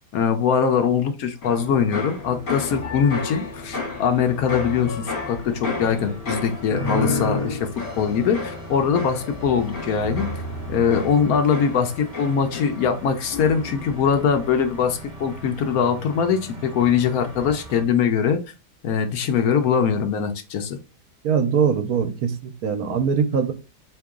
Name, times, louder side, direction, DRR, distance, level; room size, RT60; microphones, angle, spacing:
voice 1, 0.1-7.7 8.0-10.3 10.7-18.5 18.8-20.8, left 7 dB, 70° left, 1.0 m, -22 dB
sound 1, 1.4-13.0 13.3-13.8, left 3 dB, 50° left, 1.7 m, -31 dB
sound 2, 1.4-17.8, right 1 dB, 25° right, 1.1 m, -40 dB
voice 2, 21.2-23.5, right 6 dB, 70° right, 1.1 m, -22 dB
3.8 x 3.0 x 3.6 m
omnidirectional pair, 1.7 m